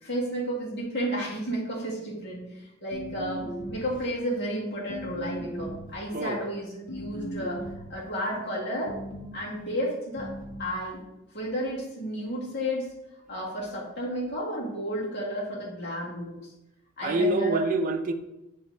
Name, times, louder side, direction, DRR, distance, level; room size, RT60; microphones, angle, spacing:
voice 1, 0.0-7.6 7.9-9.0 9.3-10.3 10.6-11.0 11.3-12.9 13.3-16.4 17.0-17.6, equal, 55° left, -4 dB, 2.0 m, -32 dB
sound 1, 2.9-4.1 4.9-6.0 6.9-8.0 8.9-9.4 10.2-10.7, right 1 dB, 75° left, 1.1 m, -37 dB
voice 2, 17.0-18.1, right 1 dB, 40° right, 6 dB, 0.5 m, -26 dB
7.2 x 3.5 x 3.9 m, 0.92 s
head